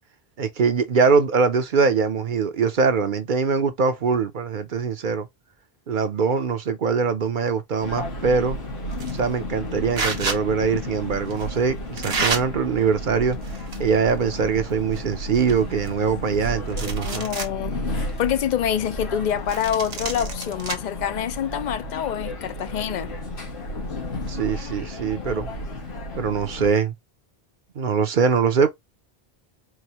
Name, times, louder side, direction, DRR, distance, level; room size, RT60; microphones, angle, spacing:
voice 1, 0.4-5.3 5.9-8.6 9.1-13.4 13.8-17.2 24.3-25.5 26.1-26.9 27.8-28.7, right 5 dB, 55° right, 0.8 m, -22 dB
sound 1, 7.8-26.7, left 1 dB, 90° left, 1.6 m, -33 dB
sound 2, 8.9-9.2 9.9-10.4 11.3-11.4 12.0-12.4 13.3-14.0 14.3-14.4 14.9-15.0 15.3-16.3 16.7-17.5 18.0-18.1 19.5-20.7, right 4 dB, 80° right, 1.3 m, -29 dB
voice 2, 16.9-17.8 18.2-23.1, left 9 dB, 55° left, 0.6 m, -26 dB
4.8 x 2.6 x 2.9 m
omnidirectional pair, 1.0 m